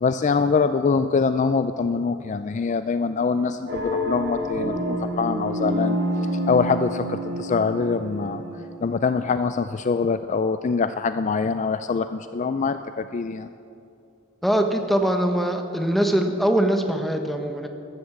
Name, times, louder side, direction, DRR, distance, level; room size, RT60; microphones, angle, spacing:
voice 1, 0.0-6.0 6.5-8.4 8.8-13.5, left 5 dB, 35° left, 11 dB, 0.3 m, -24 dB
sound 1, 3.7-9.1, equal, 65° right, 4.2 m, -28 dB
voice 2, 14.4-17.7, right 1 dB, ahead, 5 dB, 1.0 m, -22 dB
13.0 x 12.5 x 7.3 m, 2.6 s
head